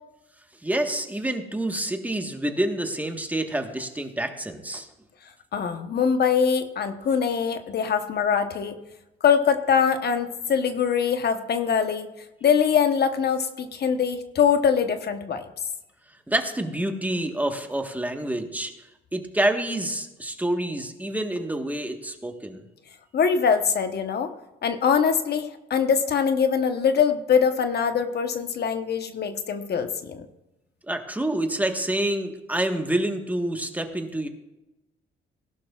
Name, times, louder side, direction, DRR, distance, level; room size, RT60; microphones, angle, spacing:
voice 1, 0.6-4.9 16.3-18.7 19.1-22.6 30.9-34.3, right 1 dB, 10° right, 5 dB, 1.3 m, -27 dB
voice 2, 5.5-8.8 9.2-12.1 12.4-15.4 23.1-24.3 24.6-30.2, left 7 dB, 55° left, 8 dB, 1.0 m, -23 dB
18.0 x 11.5 x 2.4 m, 0.97 s
cardioid pair, 90°, 20 cm